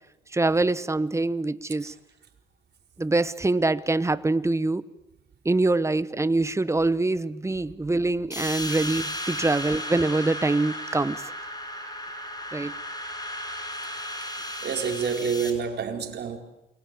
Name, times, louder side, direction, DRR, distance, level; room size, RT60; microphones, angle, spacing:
voice 1, 0.3-2.0 3.0-4.8 5.4-11.3 12.5-12.7, right 2 dB, 15° right, 1.2 m, -24 dB
sound 1, 8.3-15.5, left 1 dB, 20° left, 6.4 m, -35 dB
voice 2, 14.0-14.3 14.6-16.4, right 6 dB, 55° right, 4.7 m, -28 dB
29.0 x 23.0 x 8.6 m
cardioid pair, 90°, 20 cm